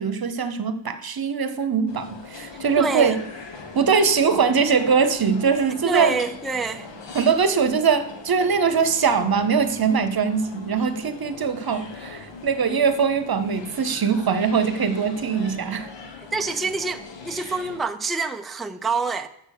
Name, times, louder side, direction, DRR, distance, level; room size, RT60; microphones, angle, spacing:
voice 1, 0.0-3.2 3.7-6.2 7.1-15.9, right 6 dB, 45° right, 10 dB, 0.9 m, -22 dB
sound 1, 1.9-17.8, left 4 dB, 60° left, 1.4 m, -41 dB
voice 2, 2.8-3.2 5.8-6.9 16.3-19.3, right 4 dB, ahead, 7 dB, 0.4 m, -27 dB
7.1 x 6.7 x 6.5 m, 0.78 s
wide cardioid pair, 105°, 50 cm